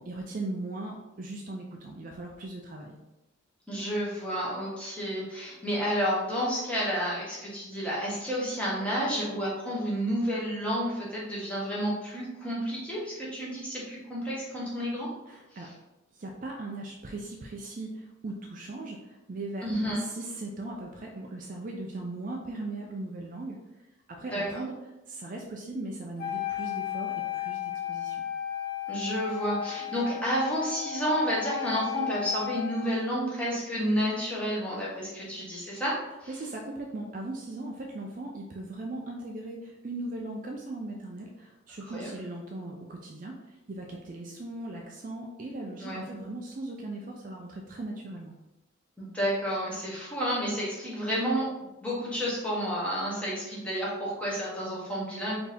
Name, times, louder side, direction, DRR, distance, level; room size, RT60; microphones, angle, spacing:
voice 1, 0.1-3.0 15.3-15.7 16.1-19.7 20.0-23.6 24.1-24.7 25.1-28.3 36.3-48.3, right 2 dB, 40° right, 0 dB, 0.4 m, -38 dB
voice 2, 3.7-15.1 19.6-20.0 24.3-24.4 28.9-36.3 41.9-42.1 45.8-46.0 49.0-51.5 51.8-55.4, equal, 5° left, -6 dB, 1.1 m, -30 dB
Wind instrument woodwind instrument, 26.2-33.1, left 11 dB, 45° left, 0.6 m, -35 dB
4.4 x 2.8 x 3.4 m, 0.99 s
head